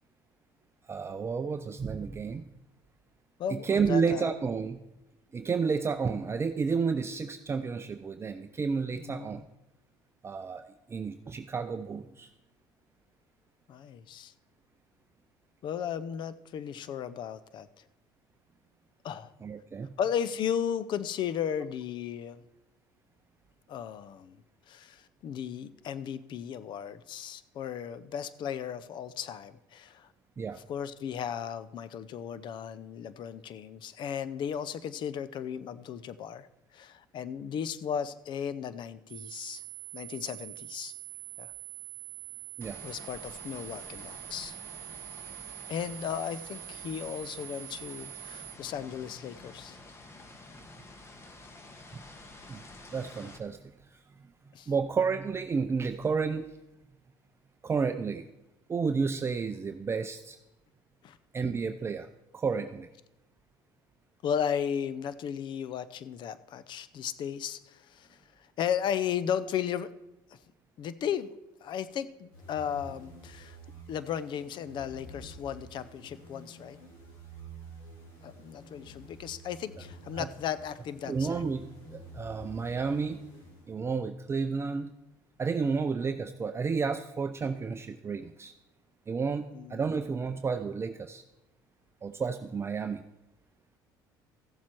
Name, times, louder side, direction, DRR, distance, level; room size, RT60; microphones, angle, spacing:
voice 1, 0.9-2.4 3.5-4.8 5.3-9.4 10.2-10.6 10.9-12.3 19.4-19.9 30.4-30.6 42.6-42.8 51.9-52.0 52.5-52.6 52.9-53.7 54.7-56.5 57.6-58.3 58.7-60.4 61.3-62.1 62.3-62.9 80.2-80.3 81.1-83.2 83.7-84.9 85.4-88.5 89.1-91.2 92.0-93.0, right 5 dB, 25° right, 8 dB, 0.5 m, -31 dB
voice 2, 3.4-4.3 8.9-9.4 13.7-14.3 15.6-17.7 19.0-19.3 20.0-22.4 23.7-24.4 24.7-30.1 30.7-36.5 36.7-39.6 39.9-40.9 41.4-41.5 42.8-44.6 45.7-49.8 54.5-54.7 61.0-61.2 64.2-68.2 68.6-69.9 70.8-71.3 71.6-73.6 73.9-76.8 78.2-81.4 89.5-89.8, left 8 dB, 55° left, 15 dB, 0.7 m, -35 dB
sound 1, 39.1-48.6, right 21 dB, 80° right, 0.7 m, -44 dB
sound 2, 42.6-53.4, left 2 dB, 30° left, 1.4 m, -50 dB
sound 3, 72.3-84.1, right 1 dB, 70° left, 4.3 m, -49 dB
14.5 x 7.4 x 4.5 m, 0.95 s
supercardioid pair, 85°, 10 cm